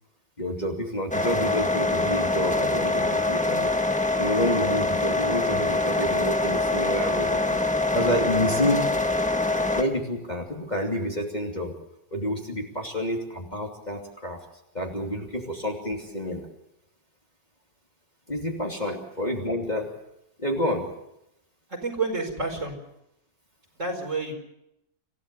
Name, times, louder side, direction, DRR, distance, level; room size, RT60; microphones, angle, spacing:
voice 1, 0.4-3.7 4.2-7.6 7.9-8.9 9.7-11.7 12.1-14.4 14.7-16.5 18.3-19.9 20.4-20.9, equal, 25° left, 0 dB, 2.8 m, -29 dB
sound 1, 1.1-9.8, left 2 dB, 5° left, 1.2 m, -24 dB
voice 2, 21.7-22.8 23.8-24.3, right 3 dB, 45° right, 3 dB, 5.2 m, -29 dB
27.0 x 16.5 x 6.8 m, 0.82 s
omnidirectional pair, 1.9 m